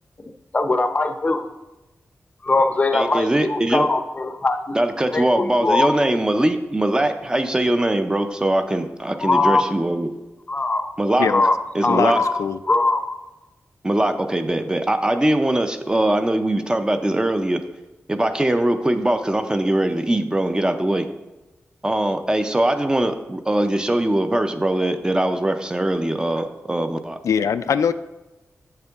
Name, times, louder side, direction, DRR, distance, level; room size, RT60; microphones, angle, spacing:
voice 1, 0.5-1.5 2.4-4.8 5.1-5.9 9.2-9.6 10.5-10.9 11.3-11.6 11.8-12.4 12.7-13.2, left 3 dB, 30° left, 0.6 m, -21 dB
voice 2, 2.9-3.9 4.7-10.1 11.0-11.3 11.7-12.2 13.8-17.6 18.1-21.1 21.8-27.2, right 1 dB, 15° right, 0.5 m, -21 dB
voice 3, 11.9-12.6 27.2-27.9, left 7 dB, 90° left, 0.3 m, -22 dB
8.4 x 6.6 x 3.5 m
wide cardioid pair, 145°, 5 cm